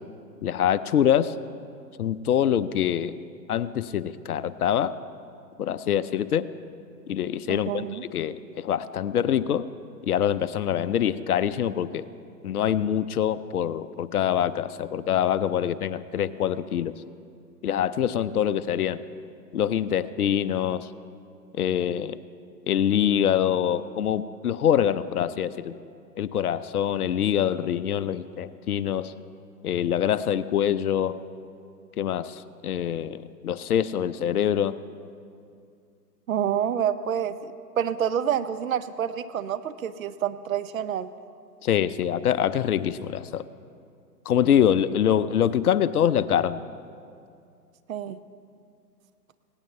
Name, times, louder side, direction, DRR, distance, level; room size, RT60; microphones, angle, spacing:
voice 1, 0.4-1.3 2.0-3.1 3.5-4.9 5.6-6.5 7.1-9.7 10.1-12.0 12.4-16.9 17.6-19.0 19.5-20.9 21.6-22.2 22.7-25.7 26.2-29.1 29.6-31.2 32.0-34.8 41.6-43.4 44.3-46.6, left 9 dB, 65° left, 14 dB, 0.7 m, -25 dB
voice 2, 7.5-8.0 36.3-41.1 47.9-48.2, right 9 dB, 55° right, 12 dB, 0.7 m, -28 dB
18.5 x 17.0 x 3.3 m, 2.4 s
hypercardioid pair, 135°, 49 cm